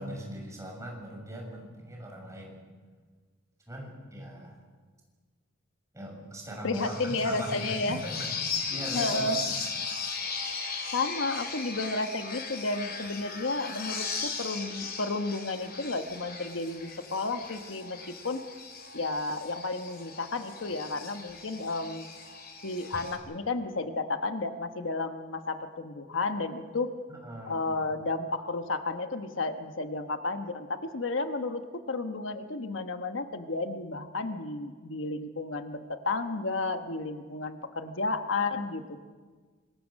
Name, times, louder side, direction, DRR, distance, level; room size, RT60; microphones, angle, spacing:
voice 1, 0.0-2.6 3.7-4.6 5.9-8.3 8.7-9.6 27.1-28.0, right 1 dB, 15° right, -1 dB, 6.8 m, -40 dB
voice 2, 6.6-8.0 8.9-9.4 10.9-18.0 18.2-18.4 18.9-22.1 22.6-26.9 27.5-39.0, left 3 dB, 70° left, 7 dB, 1.2 m, -32 dB
sound 1, 6.7-23.2, left 5 dB, 55° left, 3.8 m, -37 dB
25.5 x 21.5 x 6.5 m, 1.5 s
head